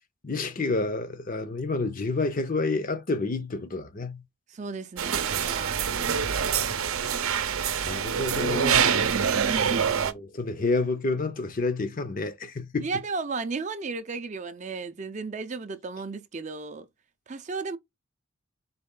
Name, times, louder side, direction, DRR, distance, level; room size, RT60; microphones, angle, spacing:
voice 1, 0.2-4.2 6.0-7.5 7.8-9.0 9.5-12.9, left 3 dB, 40° left, 0.6 m, -30 dB
voice 2, 4.5-6.0 8.9-9.9 12.8-16.9 17.3-17.8, right 4 dB, 35° right, 0.4 m, -34 dB
sound 1, 5.0-10.1, right 7 dB, 75° right, 0.6 m, -25 dB
4.3 x 3.0 x 3.7 m
head